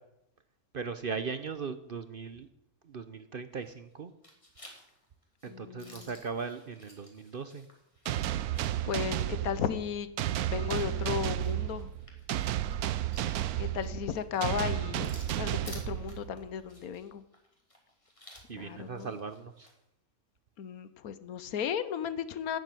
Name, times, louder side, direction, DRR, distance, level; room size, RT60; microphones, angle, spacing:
voice 1, 0.7-2.5 2.8-4.1 5.4-7.7 18.5-19.7, right 5 dB, 50° right, 10 dB, 0.7 m, -38 dB
sound 1, 3.5-3.9 4.2-8.9 9.3-9.4 10.5-19.8, equal, 20° left, 2.6 m, -54 dB
voice 2, 5.5-6.1 8.8-9.2 9.4-10.1 10.5-11.9 13.6-15.1 15.4-17.2 18.5-19.1 20.6-22.6, left 8 dB, 80° left, 13 dB, 1.3 m, -35 dB
sound 2, 8.1-16.5, right 12 dB, 90° right, 1.1 m, -32 dB
12.0 x 7.5 x 9.1 m, 0.81 s
omnidirectional pair, 1.5 m